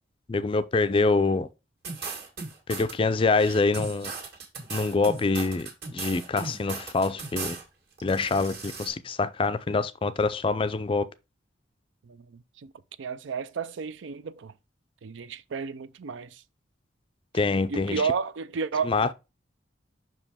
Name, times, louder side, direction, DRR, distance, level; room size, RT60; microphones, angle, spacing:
voice 1, 0.3-1.5 2.7-4.1 4.7-5.7 5.9-7.6 8.0-11.1 17.3-18.0 18.8-19.1, left 3 dB, 30° left, 0.4 m, -25 dB
sound 1, 1.8-2.9 3.3-7.6 8.0-8.9, right 4 dB, 55° right, 1.9 m, -37 dB
voice 2, 12.0-12.7 13.0-14.5 15.0-16.4 17.7-19.1, right 5 dB, 80° right, 0.5 m, -32 dB
5.9 x 5.0 x 3.5 m
head